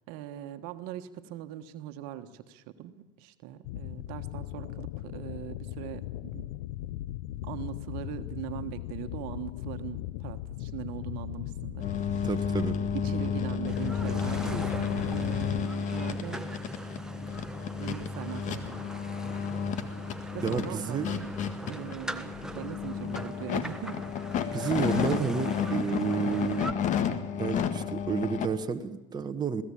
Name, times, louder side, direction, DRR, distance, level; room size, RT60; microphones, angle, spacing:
voice 1, 0.1-6.5 7.4-11.8 12.9-16.5 17.8-18.8 20.3-21.3 21.6-24.0 24.4-24.7, right 11 dB, 65° right, 9 dB, 1.4 m, -40 dB
sound 1, 3.6-15.7, left 15 dB, 75° left, 0.8 m, -37 dB
sound 2, 11.8-28.5, left 7 dB, 45° left, 1.8 m, -32 dB
voice 2, 12.2-12.8 20.4-21.1 24.5-26.8 27.4-29.6, right 6 dB, 25° right, 6 dB, 1.3 m, -31 dB
sound 3, 13.7-26.7, right 1 dB, 5° right, 1.4 m, -42 dB
21.0 x 16.5 x 8.7 m, 1.0 s
supercardioid pair, 100°, 17 cm